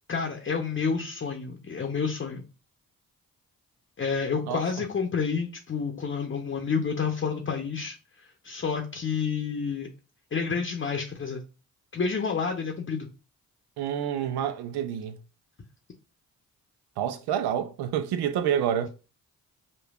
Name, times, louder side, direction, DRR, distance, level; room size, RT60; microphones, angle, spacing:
voice 1, 0.1-2.4 4.0-8.0 8.4-9.9 10.3-11.4 11.9-13.1, left 5 dB, 30° left, 0.7 m, -29 dB
voice 2, 13.8-15.2 17.0-18.9, right 9 dB, 90° right, 0.5 m, -28 dB
5.2 x 2.2 x 2.3 m
supercardioid pair, 50°, 38 cm